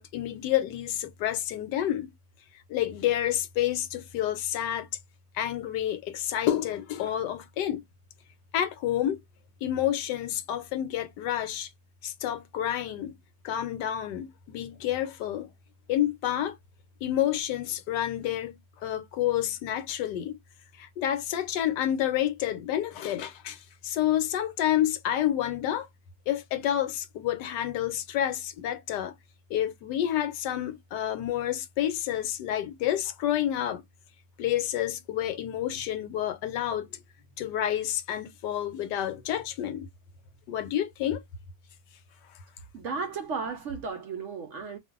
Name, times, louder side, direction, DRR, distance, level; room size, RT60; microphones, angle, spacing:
voice 1, 0.0-2.1 2.7-4.9 5.3-7.8 8.5-9.2 9.6-11.7 12.0-13.2 13.4-15.5 15.9-16.6 17.0-20.4 20.8-25.9 26.3-29.1 29.5-33.8 34.4-37.0 37.4-39.9 40.5-41.2, left 11 dB, 75° left, 1.2 m, -29 dB
voice 2, 42.7-44.8, right 5 dB, 70° right, 0.7 m, -34 dB
2.5 x 2.5 x 3.5 m
omnidirectional pair, 1.9 m